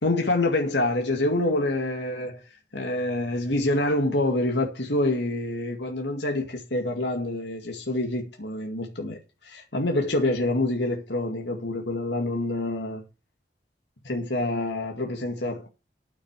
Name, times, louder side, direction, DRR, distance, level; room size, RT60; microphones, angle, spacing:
voice 1, 0.0-2.4 2.7-13.0 14.0-15.7, left 2 dB, 70° left, 2.2 m, -26 dB
9.6 x 8.5 x 6.5 m
head